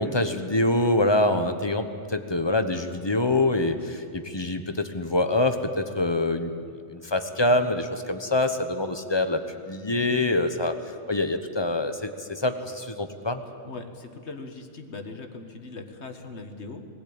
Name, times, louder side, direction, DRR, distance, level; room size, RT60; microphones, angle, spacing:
voice 1, 0.0-6.5 6.9-9.4 9.7-10.7 11.1-13.4, left 2 dB, 20° left, 8 dB, 1.0 m, -25 dB
voice 2, 13.6-16.9, left 3 dB, 60° left, 6 dB, 1.8 m, -40 dB
21.0 x 16.0 x 8.7 m, 2.3 s
omnidirectional pair, 1.3 m